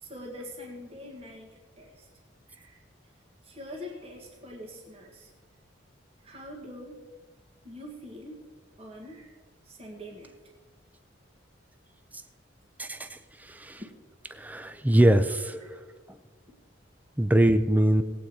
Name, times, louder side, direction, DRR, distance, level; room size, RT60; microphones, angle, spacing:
voice 1, 0.0-1.5 1.8-2.1 2.5-2.8 3.4-5.3 6.2-7.0 7.6-8.4 8.8-9.3 9.7-10.3 15.5-15.7 17.8-17.9, left 1 dB, 30° right, -1 dB, 1.8 m, -43 dB
voice 2, 12.8-13.2 13.5-13.8 14.3-15.5 17.2-18.0, right 1 dB, 10° right, 10 dB, 0.5 m, -22 dB
18.5 x 8.6 x 4.7 m, 1.3 s
head